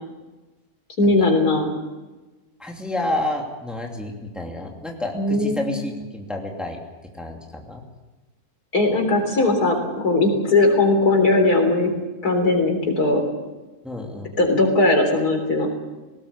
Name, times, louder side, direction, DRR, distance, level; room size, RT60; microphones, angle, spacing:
voice 1, 1.0-1.7 5.1-5.7 8.7-11.9 12.2-13.2 14.4-15.7, left 2 dB, 75° left, 4 dB, 4.2 m, -19 dB
voice 2, 2.6-6.8 7.1-7.8 13.8-14.3, left 1 dB, ahead, 1 dB, 2.6 m, -29 dB
19.0 x 18.5 x 8.3 m, 1.2 s
omnidirectional pair, 1.7 m